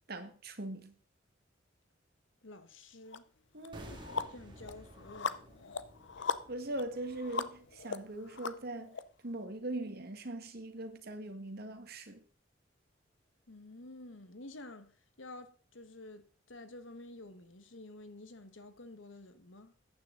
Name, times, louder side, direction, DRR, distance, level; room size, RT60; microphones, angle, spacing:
voice 1, 0.1-0.9 3.5-4.0 6.5-9.0 9.2-12.2, right 1 dB, 55° right, 1.6 m, -41 dB
voice 2, 2.4-3.2 3.9-5.8 13.5-19.8, left 2 dB, 85° left, 1.4 m, -51 dB
sound 1, 3.1-3.2 3.6-9.0, left 5 dB, 65° left, 0.7 m, -39 dB
sound 2, 3.7-8.7 9.0-9.2, right 1 dB, 25° right, 2.0 m, -54 dB
14.0 x 9.6 x 3.9 m
head